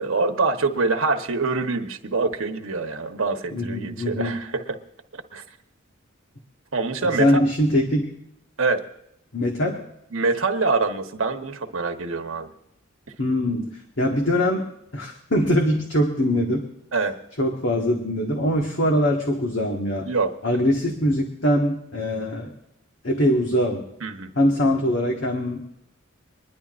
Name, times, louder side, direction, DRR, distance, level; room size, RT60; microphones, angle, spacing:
voice 1, 0.0-4.6 5.1-5.4 6.7-7.4 8.6-8.8 10.1-12.5 16.9-17.2 20.1-20.3 24.0-24.3, right 3 dB, 80° right, 4 dB, 1.2 m, -25 dB
voice 2, 3.5-4.4 7.0-8.1 9.3-9.8 13.2-13.7 14.0-14.7 14.9-16.6 17.4-20.1 20.4-22.5 23.0-23.8 24.3-25.6, equal, 65° left, 0 dB, 1.6 m, -22 dB
24.5 x 11.0 x 2.5 m, 0.78 s
head